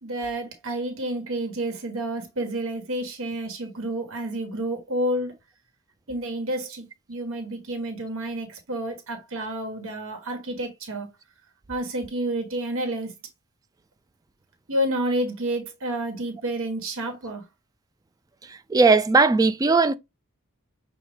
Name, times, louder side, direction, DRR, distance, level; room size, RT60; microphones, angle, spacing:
voice 1, 0.0-5.3 6.1-11.1 11.7-13.1 14.7-17.4, right 1 dB, 65° right, 1.3 m, -29 dB
voice 2, 18.7-20.0, right 4 dB, 15° right, 0.3 m, -18 dB
6.3 x 2.4 x 3.3 m
head